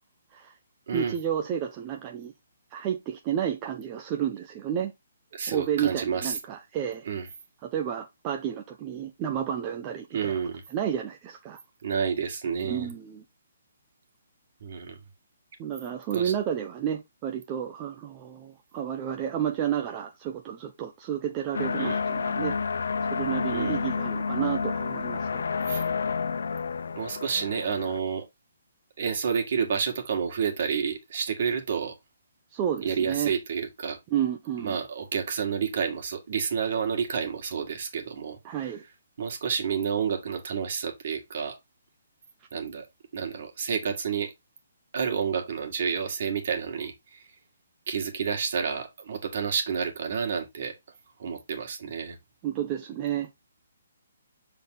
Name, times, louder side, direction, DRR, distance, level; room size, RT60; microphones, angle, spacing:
voice 1, 0.9-2.3 2.7-4.9 5.5-7.1 7.6-10.4 10.7-11.6 12.6-13.2 15.6-22.6 23.1-25.6 32.5-33.3 34.1-34.8 38.4-38.8 52.4-53.3, right 9 dB, 15° right, 0.5 m, -31 dB
voice 2, 5.3-6.4 7.1-7.3 10.1-10.6 11.8-12.9 14.6-15.0 16.1-16.3 21.8-22.0 23.5-23.8 25.7-25.8 27.0-28.2 29.0-32.0 32.8-34.0 34.6-38.7 39.2-41.6 42.5-42.9 43.1-44.3 44.9-47.2 47.9-50.8 51.2-52.2, right 6 dB, 40° right, 1.9 m, -30 dB
sound 1, 21.5-28.0, left 5 dB, 70° left, 0.5 m, -30 dB
7.1 x 3.9 x 3.8 m
hypercardioid pair, 175°, 0 cm